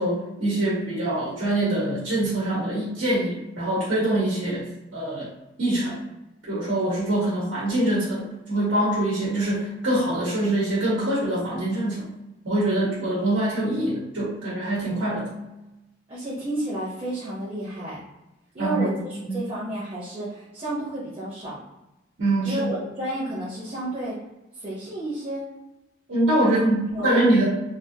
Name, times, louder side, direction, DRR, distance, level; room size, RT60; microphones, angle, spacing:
voice 1, 0.0-4.6 4.9-5.3 5.6-6.0 6.5-12.0 12.4-15.3 18.6-18.9 22.2-22.7 26.1-27.5, right 1 dB, 80° right, -7 dB, 1.2 m, -24 dB
voice 2, 16.1-18.0 18.5-21.6 22.4-24.2 24.5-25.4 26.4-26.5 26.9-27.4, right 1 dB, 30° right, -8 dB, 0.8 m, -31 dB
3.4 x 2.5 x 2.7 m, 0.99 s
head